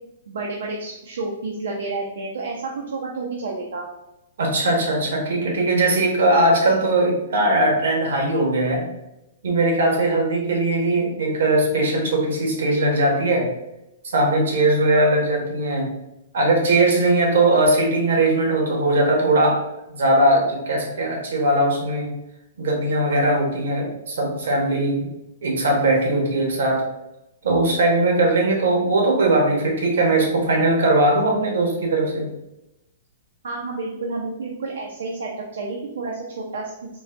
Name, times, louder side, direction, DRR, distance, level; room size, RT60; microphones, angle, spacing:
voice 1, 0.3-3.9 14.9-15.1 33.4-36.7, right 3 dB, 90° right, -1 dB, 0.6 m, -30 dB
voice 2, 4.4-8.9 9.4-13.5 14.1-15.9 16.3-19.6 19.9-22.1 22.6-25.1 25.4-26.8 27.4-32.3, right 2 dB, 70° right, 0 dB, 1.1 m, -20 dB
3.9 x 2.2 x 3.7 m, 0.89 s
hypercardioid pair, 170°, 0 cm